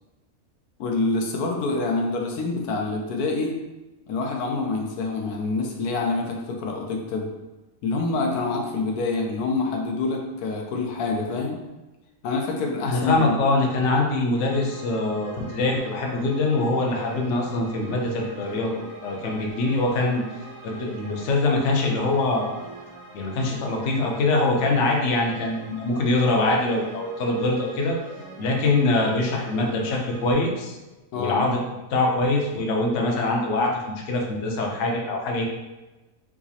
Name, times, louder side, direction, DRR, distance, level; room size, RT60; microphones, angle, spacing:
voice 1, 0.8-3.5 4.1-7.3 7.8-11.6 12.2-13.4 31.1-31.4, left 3 dB, 90° left, 1 dB, 1.1 m, -26 dB
voice 2, 12.8-20.2 20.6-22.5 23.1-28.0 28.4-30.8 31.1-31.6 31.9-35.5, left 2 dB, 65° left, 0 dB, 0.9 m, -23 dB
sound 1, 14.3-30.3, right 3 dB, 65° right, 1.1 m, -43 dB
4.7 x 2.0 x 2.7 m, 1.1 s
omnidirectional pair, 1.6 m